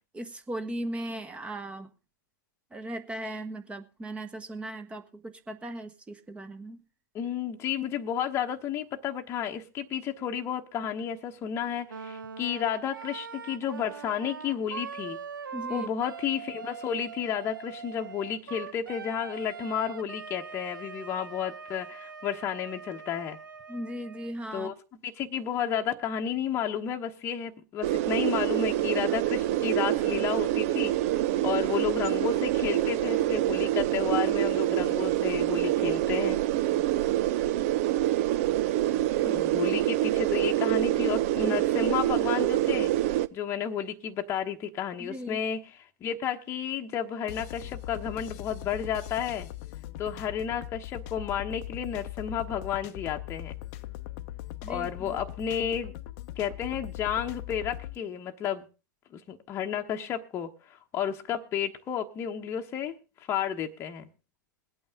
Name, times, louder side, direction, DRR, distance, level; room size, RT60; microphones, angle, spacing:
voice 1, 0.0-1.9 2.7-6.8 15.5-15.9 23.7-24.7 39.2-39.4 45.0-45.4 54.6-55.2, right 1 dB, 10° right, 1.2 m, -38 dB
voice 2, 7.1-15.2 15.7-23.4 24.5-24.7 25.0-36.4 39.2-42.9 43.3-45.6 46.0-49.5 50.0-53.5 54.7-55.9 56.4-58.7 59.1-60.5 60.9-62.9 63.3-64.1, left 8 dB, 25° left, 1.1 m, -32 dB
Wind instrument woodwind instrument, 11.9-24.4, right 6 dB, 75° right, 0.9 m, -42 dB
sound 1, 27.8-43.3, right 14 dB, 45° right, 0.6 m, -26 dB
sound 2, 47.3-58.0, left 15 dB, 40° left, 0.8 m, -40 dB
22.0 x 8.8 x 3.7 m
hypercardioid pair, 115°, 11 cm